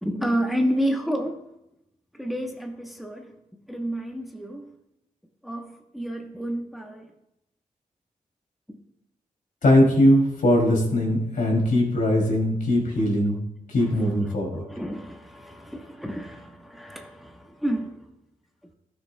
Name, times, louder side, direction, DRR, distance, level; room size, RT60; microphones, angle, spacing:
voice 1, 0.0-1.4 2.1-3.3 3.7-4.7 5.4-7.1 8.7-8.8 11.7-11.8 13.8-18.1, equal, ahead, 0.9 m, -30 dB
voice 2, 9.6-13.4 13.7-14.6, left 1 dB, 75° left, 2.7 m, -20 dB
13.5 x 6.3 x 2.2 m
cardioid pair, 65°, 14 cm